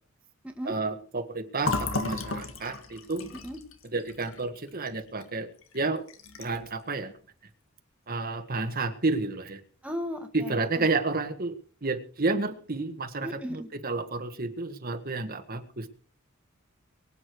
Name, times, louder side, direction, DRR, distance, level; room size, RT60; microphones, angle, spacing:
voice 1, 0.6-3.3 3.9-5.5 5.7-6.1 6.4-7.1 8.1-9.6 10.3-11.5 11.8-15.9, right 3 dB, 45° right, 7 dB, 1.6 m, -30 dB
Fill (with liquid), 1.6-5.3 5.6-5.8 6.1-6.7, left 3 dB, 70° left, 2.0 m, -34 dB
voice 2, 9.8-10.8 13.2-13.7, equal, 5° right, 3 dB, 1.8 m, -36 dB
24.0 x 8.7 x 4.7 m, 0.43 s
head